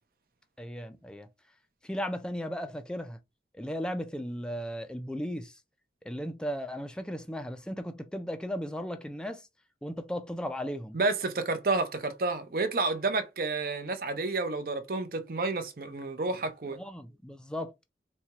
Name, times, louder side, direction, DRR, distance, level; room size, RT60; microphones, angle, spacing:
voice 1, 0.6-1.3 1.8-3.2 3.5-5.6 6.0-9.5 9.8-11.0 16.8-17.7, equal, 5° left, 0.3 m, -36 dB
voice 2, 10.9-16.8, right 3 dB, 55° right, 0.6 m, -30 dB
4.2 x 2.2 x 2.8 m
head